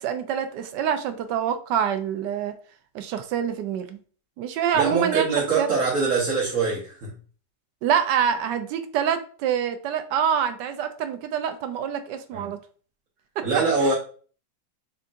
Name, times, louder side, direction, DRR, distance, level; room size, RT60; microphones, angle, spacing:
voice 1, 0.0-2.5 2.9-4.0 4.4-5.3 5.6-5.7 7.8-12.6 13.4-13.5 13.8-13.9, right 8 dB, 90° right, 8 dB, 1.2 m, -26 dB
voice 2, 4.7-7.1 12.3-12.5 13.4-13.9, right 4 dB, 55° right, -5 dB, 1.4 m, -23 dB
3.8 x 3.5 x 2.5 m, 0.41 s
omnidirectional pair, 1.8 m